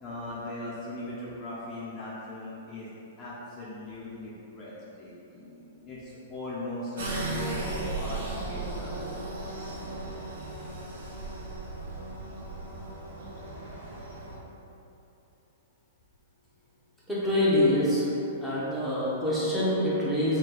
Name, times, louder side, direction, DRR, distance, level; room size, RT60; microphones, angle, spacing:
voice 1, 0.0-2.9 3.2-9.0, left 1 dB, 25° left, -8 dB, 0.6 m, -39 dB
sound 1, 7.0-14.3, right 2 dB, 75° right, 1.1 m, -36 dB
voice 2, 17.1-18.1 18.4-20.4, left 1 dB, ahead, -10 dB, 0.9 m, -25 dB
4.3 x 2.3 x 3.9 m, 2.9 s
hypercardioid pair, 155°, 0 cm